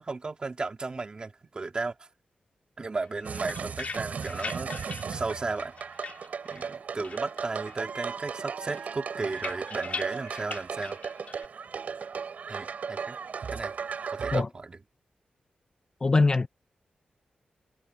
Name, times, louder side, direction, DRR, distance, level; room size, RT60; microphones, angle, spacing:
voice 1, 0.0-2.1 2.8-4.7 5.1-6.0 6.5-11.0 12.5-13.2 13.5-13.7 14.1-14.8, right 3 dB, 35° right, 2.9 m, -35 dB
sound 1, 3.0-6.8 7.0-7.9 8.2-11.5, left 5 dB, 55° left, 2.5 m, -41 dB
sound 2, 3.2-14.4, right 6 dB, 65° right, 7.6 m, -36 dB
voice 2, 16.0-16.5, left 3 dB, 30° left, 0.8 m, -22 dB
wide cardioid pair, 135°, 3 cm